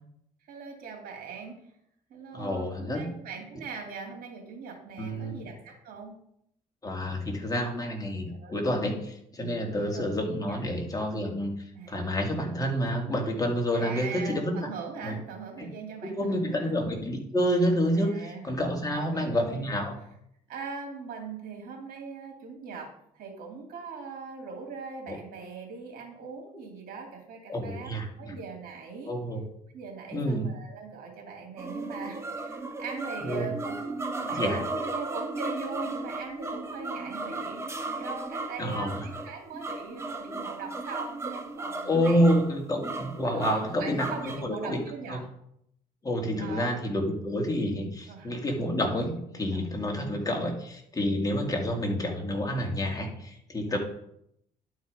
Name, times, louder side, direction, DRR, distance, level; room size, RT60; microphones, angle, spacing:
voice 1, 0.5-1.6 2.1-6.2 8.2-8.6 9.7-10.1 10.4-10.6 11.7-12.0 13.7-16.7 17.9-18.5 18.9-19.8 20.5-27.9 28.2-29.1 29.7-42.3 43.3-45.3 46.4-46.8 48.1-48.3 49.3-49.6 50.1-50.5 51.7-52.2 53.7-53.8, right 5 dB, 65° right, 1 dB, 2.8 m, -41 dB
voice 2, 2.3-3.1 5.0-5.4 6.8-11.6 11.9-14.7 15.0-15.2 15.6-15.7 16.2-20.0 25.1-25.2 27.5-28.3 29.1-29.4 30.1-30.5 33.2-33.5 34.3-34.6 38.6-38.9 41.9-44.8 45.1-45.2 46.0-53.8, equal, 20° left, 1 dB, 2.2 m, -28 dB
sound 1, 31.6-44.4, right 2 dB, 15° right, 1.1 m, -35 dB
11.0 x 4.7 x 5.1 m, 0.73 s
cardioid pair, 90°, 16 cm